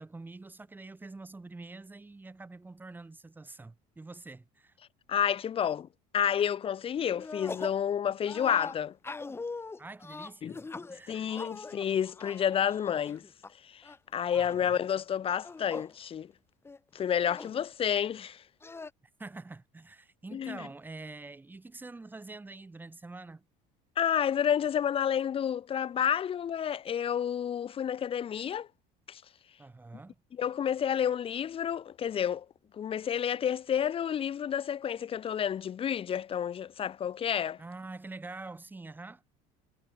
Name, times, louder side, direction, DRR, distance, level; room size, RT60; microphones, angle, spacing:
voice 1, 0.0-4.7 9.8-11.3 14.4-14.8 19.2-23.5 29.6-30.2 37.6-39.2, right 3 dB, 10° right, 2.9 m, -46 dB
voice 2, 5.1-5.9 6.1-9.0 10.4-10.6 11.1-13.2 13.6-16.3 16.9-18.4 20.3-20.7 24.0-28.7 29.1-29.2 30.4-32.5 32.7-37.6, left 9 dB, 30° left, 2.1 m, -30 dB
sound 1, 7.1-7.8 8.2-13.5 13.8-14.7 15.3-15.9 16.3-16.4 16.6-17.6 18.6-18.9, left 3 dB, 15° left, 2.1 m, -42 dB
cardioid pair, 135°, 18 cm